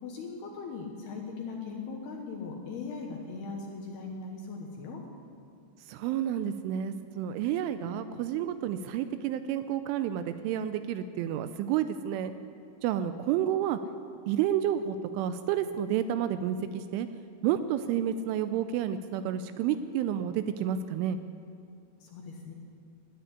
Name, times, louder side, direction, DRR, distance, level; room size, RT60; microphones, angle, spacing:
voice 1, 0.0-5.0 22.0-22.5, left 4 dB, 70° left, 1 dB, 2.7 m, -39 dB
voice 2, 5.9-12.3 12.8-13.8 14.3-17.1 17.4-21.2, right 10 dB, 85° right, 11 dB, 2.9 m, -30 dB
13.0 x 10.0 x 9.7 m, 2.4 s
omnidirectional pair, 5.8 m